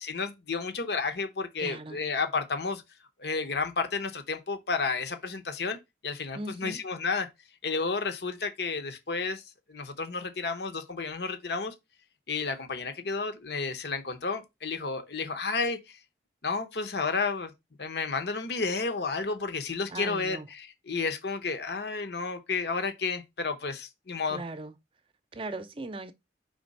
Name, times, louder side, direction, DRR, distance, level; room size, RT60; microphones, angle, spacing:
voice 1, 0.0-2.8 3.2-5.8 6.0-7.3 7.6-9.4 9.7-11.7 12.3-16.0 16.4-17.5 17.8-24.4, left 4 dB, 65° left, 0.8 m, -31 dB
voice 2, 1.6-2.0 6.3-6.8 19.9-20.5 24.3-24.7 25.3-26.1, right 2 dB, 30° right, 0.6 m, -38 dB
5.2 x 3.5 x 5.2 m
head